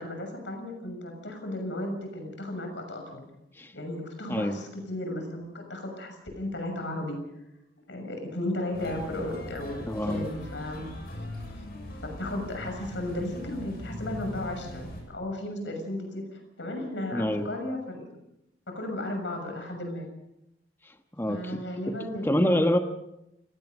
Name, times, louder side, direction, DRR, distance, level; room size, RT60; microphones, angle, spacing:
voice 1, 0.0-3.3 3.7-7.2 7.9-10.9 12.0-18.1 18.7-20.1 21.3-22.7, left 1 dB, 85° left, 4 dB, 6.8 m, -35 dB
sound 1, 8.7-15.0, left 1 dB, 55° left, 7.7 m, -40 dB
voice 2, 9.9-10.3 17.1-17.5 20.8-21.6 22.2-22.8, left 1 dB, 10° left, 5 dB, 1.2 m, -26 dB
29.0 x 17.0 x 5.4 m, 0.84 s
head